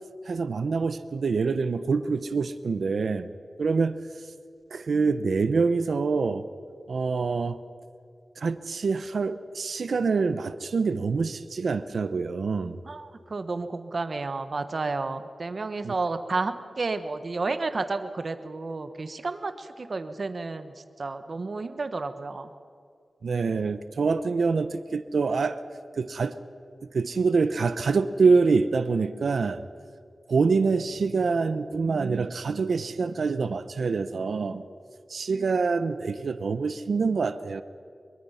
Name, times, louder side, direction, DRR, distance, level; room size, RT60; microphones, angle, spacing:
voice 1, 0.3-3.3 3.6-3.9 4.7-6.4 6.9-7.6 8.4-12.8 15.8-15.9 23.2-25.6 26.0-26.3 26.9-29.6 30.3-34.6 35.1-37.6, right 4 dB, 85° right, 11 dB, 0.9 m, -25 dB
voice 2, 12.8-22.5, right 3 dB, 55° right, 9 dB, 1.1 m, -31 dB
24.0 x 23.0 x 5.8 m, 2.3 s
wide cardioid pair, 110°, 0 cm